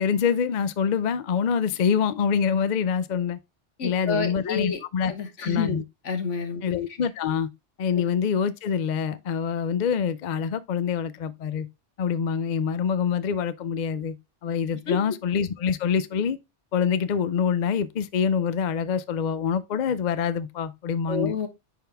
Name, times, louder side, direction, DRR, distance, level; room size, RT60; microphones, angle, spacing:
voice 1, 0.0-3.4 3.8-5.1 5.4-5.8 6.6-7.5 7.8-11.7 12.0-14.1 14.4-16.4 16.7-21.4, left 7 dB, 55° left, 0.5 m, -25 dB
voice 2, 3.8-4.8 5.1-5.8 6.0-6.6 7.9-8.0 14.9-15.0 21.1-21.5, left 5 dB, 80° left, 1.5 m, -28 dB
10.0 x 3.7 x 3.4 m
omnidirectional pair, 1.2 m